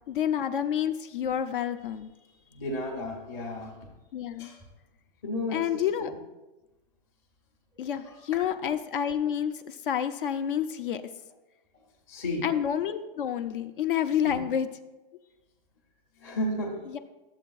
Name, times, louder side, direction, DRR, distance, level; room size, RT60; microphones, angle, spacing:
voice 1, 0.1-2.1 4.1-4.5 5.5-6.1 7.8-11.0 12.4-14.7 16.9-17.0, left 9 dB, 65° left, 9 dB, 0.5 m, -29 dB
voice 2, 2.5-3.9 4.4-4.7 5.2-6.1 7.8-8.6 11.7-12.5 14.2-14.4 16.2-16.8, left 1 dB, 10° left, -2 dB, 0.6 m, -34 dB
12.5 x 7.4 x 2.3 m, 1.1 s
hypercardioid pair, 180°, 29 cm